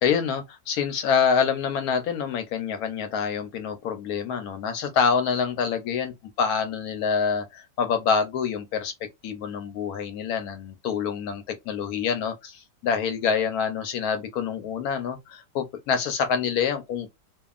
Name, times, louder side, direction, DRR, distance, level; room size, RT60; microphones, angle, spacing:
voice 1, 0.0-6.1 6.4-8.9 9.2-17.1, left 6 dB, 70° left, 1.0 m, -26 dB
2.8 x 2.3 x 2.3 m
omnidirectional pair, 1.9 m